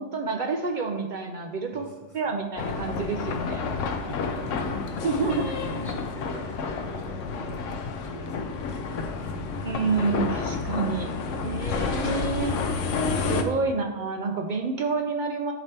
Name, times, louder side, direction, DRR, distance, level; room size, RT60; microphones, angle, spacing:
voice 1, 0.0-1.9 2.1-3.6 5.0-5.5 9.6-11.1 11.4-12.6 13.1-15.5, right 4 dB, 55° right, 4 dB, 0.5 m, -28 dB
voice 2, 1.7-2.2 4.0-5.1 5.4-7.7 8.0-8.4 8.7-9.6, right 1 dB, 30° right, -1 dB, 0.8 m, -42 dB
sound 1, 2.5-8.1, left 2 dB, 60° left, 1.0 m, -45 dB
sound 2, 2.6-13.4, left 4 dB, 90° left, 1.0 m, -30 dB
9.6 x 4.3 x 3.3 m, 1.2 s
omnidirectional pair, 1.2 m